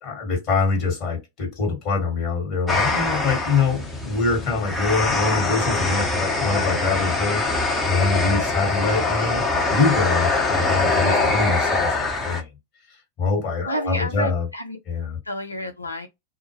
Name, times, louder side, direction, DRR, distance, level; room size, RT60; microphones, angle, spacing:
voice 1, 0.0-9.4 9.7-12.5 13.2-14.4 14.9-15.2, left 4 dB, 35° left, 1.3 m, -24 dB
sound 1, 2.7-12.4, left 3 dB, 15° left, 0.7 m, -23 dB
voice 2, 11.0-11.3 13.6-14.8 15.2-16.1, equal, 85° left, 0.5 m, -30 dB
2.3 x 2.0 x 2.9 m
figure-of-eight pair, 90°, 0 cm